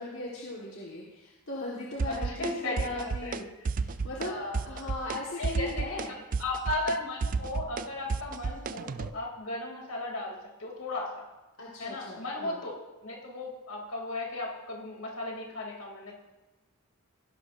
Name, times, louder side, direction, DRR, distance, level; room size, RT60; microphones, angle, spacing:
voice 1, 0.0-6.1 11.6-12.6, left 2 dB, 65° left, -4 dB, 1.6 m, -38 dB
sound 1, 2.0-2.5 2.8-3.4 3.7-4.3 4.5-5.2 5.4-9.1, right 4 dB, 40° right, 0.3 m, -31 dB
voice 2, 2.1-3.3 4.3-4.8 5.4-5.9 6.4-11.2 11.8-16.1, left 2 dB, 80° left, -1 dB, 2.9 m, -36 dB
16.5 x 11.5 x 2.6 m, 1.1 s
head